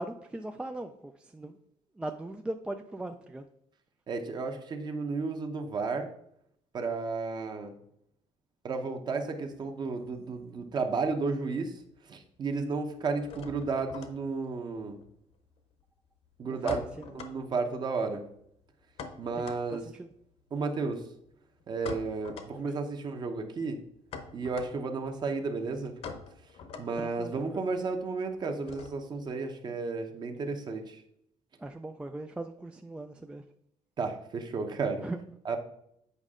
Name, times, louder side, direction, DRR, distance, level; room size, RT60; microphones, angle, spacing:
voice 1, 0.0-1.6 2.0-3.5 16.4-17.1 19.3-20.1 22.6-22.8 27.0-27.6 31.6-33.4 35.0-35.2, right 2 dB, 10° right, 6 dB, 0.3 m, -39 dB
voice 2, 4.1-6.1 6.7-7.7 8.6-11.7 12.1-15.0 16.4-16.8 17.1-18.2 19.2-19.9 20.5-21.1 21.7-23.8 24.3-25.9 26.8-31.0 34.0-35.0 35.4-35.6, right 4 dB, 35° right, 5 dB, 0.9 m, -33 dB
sound 1, 9.5-11.0 11.3-12.0 12.2-29.3, left 5 dB, 55° left, 0.9 m, -46 dB
8.2 x 5.2 x 3.7 m, 0.73 s
cardioid pair, 145°, 12 cm